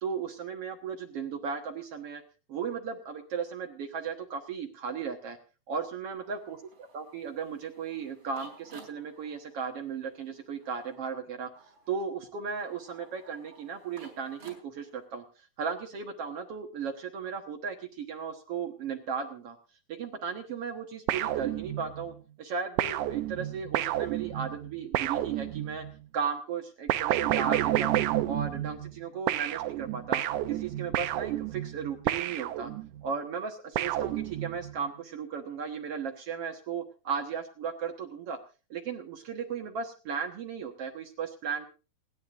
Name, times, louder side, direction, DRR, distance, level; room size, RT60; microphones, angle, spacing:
voice 1, 0.0-2.2 2.5-5.4 5.7-11.5 11.9-15.2 15.6-19.6 19.9-25.8 26.1-32.7 33.0-38.4 38.7-41.7, right 6 dB, 60° right, 4 dB, 1.6 m, -36 dB
sound 1, 6.2-15.1, right 4 dB, 35° right, 5.3 m, -55 dB
sound 2, 21.1-22.1 22.8-25.9 26.9-29.0 29.3-33.0 33.7-34.7, right 14 dB, 85° right, 1.7 m, -30 dB
28.0 x 10.5 x 2.5 m, 0.33 s
omnidirectional pair, 4.5 m